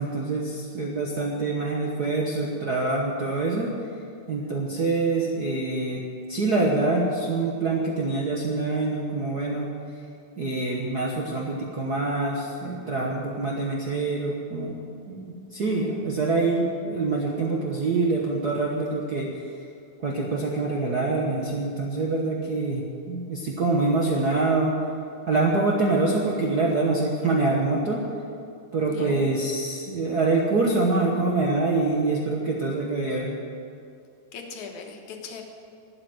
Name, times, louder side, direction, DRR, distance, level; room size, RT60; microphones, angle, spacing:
voice 1, 0.0-3.7 4.3-6.0 6.3-9.7 10.4-14.8 15.1-19.3 20.0-24.7 25.2-28.0 28.7-33.3, right 3 dB, 50° right, -2 dB, 1.2 m, -25 dB
voice 2, 28.9-29.2 34.3-35.4, left 5 dB, 75° left, 3 dB, 2.7 m, -39 dB
12.5 x 8.9 x 9.4 m, 2.5 s
omnidirectional pair, 3.5 m